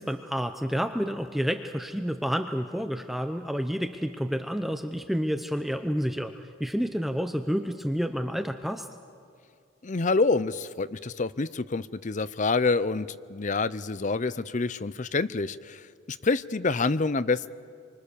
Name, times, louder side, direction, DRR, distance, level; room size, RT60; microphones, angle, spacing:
voice 1, 0.0-6.3 6.6-8.9, equal, ahead, 7 dB, 0.7 m, -29 dB
voice 2, 9.8-15.8 16.1-17.5, left 3 dB, 40° left, 16 dB, 0.6 m, -27 dB
27.0 x 24.5 x 6.9 m, 2.3 s
head